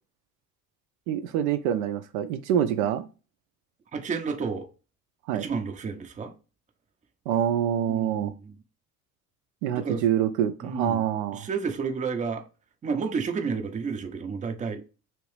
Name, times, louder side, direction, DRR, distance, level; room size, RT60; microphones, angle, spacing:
voice 1, 1.1-3.0 5.3-5.5 7.3-8.3 9.6-11.5, right 10 dB, 65° right, 0.5 m, -26 dB
voice 2, 3.9-4.7 5.3-6.3 7.9-8.5 9.7-10.0 10.6-11.1 11.3-12.4 12.8-14.8, right 5 dB, 15° right, 0.5 m, -31 dB
3.0 x 3.0 x 3.1 m
figure-of-eight pair, 60°, 47 cm